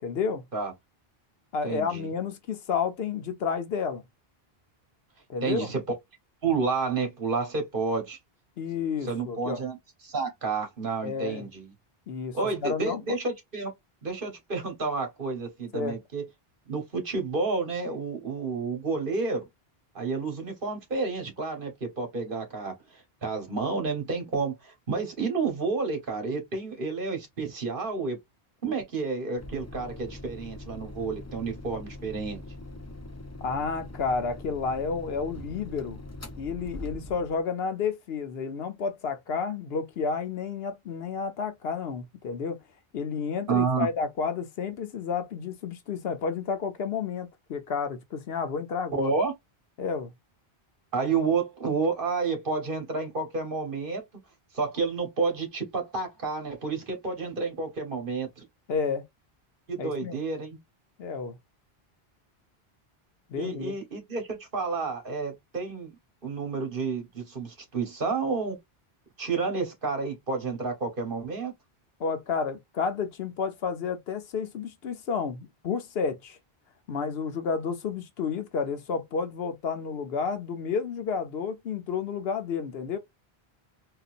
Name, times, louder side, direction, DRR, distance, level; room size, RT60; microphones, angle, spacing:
voice 1, 0.0-0.4 1.5-4.0 5.3-5.7 8.6-9.6 11.0-11.5 12.1-13.0 15.7-16.0 33.4-36.0 36.4-42.6 42.9-49.1 49.8-50.1 58.7-59.0 59.8-60.2 61.0-61.3 63.3-63.7 72.0-76.4 76.9-83.0, left 5 dB, 75° left, 1.0 m, -31 dB
voice 2, 1.6-2.1 5.4-5.8 6.4-8.2 9.0-9.8 10.0-11.7 12.3-13.7 14.0-16.2 16.7-19.5 19.9-28.2 28.6-32.4 43.5-43.9 49.0-49.3 50.9-54.0 54.5-58.4 59.7-60.6 63.3-68.6 69.2-71.5, right 4 dB, 55° right, 1.5 m, -30 dB
Stop Engine, 29.4-37.4, left 1 dB, 20° left, 0.4 m, -42 dB
3.9 x 2.5 x 2.4 m
omnidirectional pair, 1.0 m